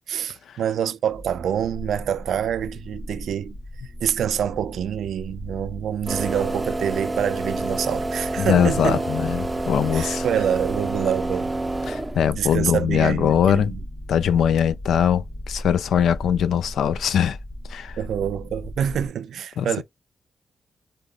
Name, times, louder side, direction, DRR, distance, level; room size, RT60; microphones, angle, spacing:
voice 1, 0.1-3.6 4.0-9.0 9.9-11.5 12.3-13.8 18.0-19.8, right 9 dB, 85° right, 0.3 m, -26 dB
sound 1, 1.1-19.1, left 1 dB, 40° left, 1.4 m, -37 dB
sound 2, 6.1-12.4, right 2 dB, 20° right, 0.5 m, -28 dB
voice 2, 8.4-10.2 11.9-13.7 14.1-17.4 17.7-18.0 19.6-19.7, left 8 dB, 85° left, 0.3 m, -21 dB
4.9 x 2.1 x 2.3 m
cardioid pair, 65°, 0 cm